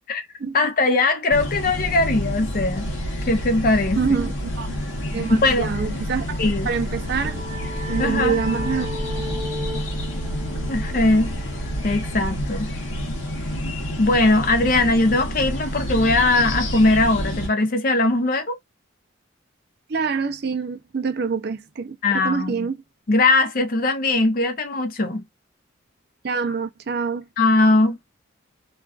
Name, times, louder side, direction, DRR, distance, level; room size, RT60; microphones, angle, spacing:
voice 1, 0.5-2.9 3.3-4.2 5.4-5.7 6.4-6.7 8.0-8.4 10.7-11.3 11.8-12.7 14.0-18.5 22.0-22.7 23.1-25.2 27.4-28.0, left 2 dB, 45° left, 0.6 m, -20 dB
sound 1, 1.3-17.5, equal, 70° left, 0.9 m, -28 dB
voice 2, 4.0-4.7 5.1-6.4 6.7-7.4 7.9-8.9 19.9-22.8 26.2-27.3, right 5 dB, 50° right, 0.4 m, -26 dB
sound 2, 6.7-12.1, left 1 dB, 35° right, 0.9 m, -36 dB
2.4 x 2.3 x 2.3 m
head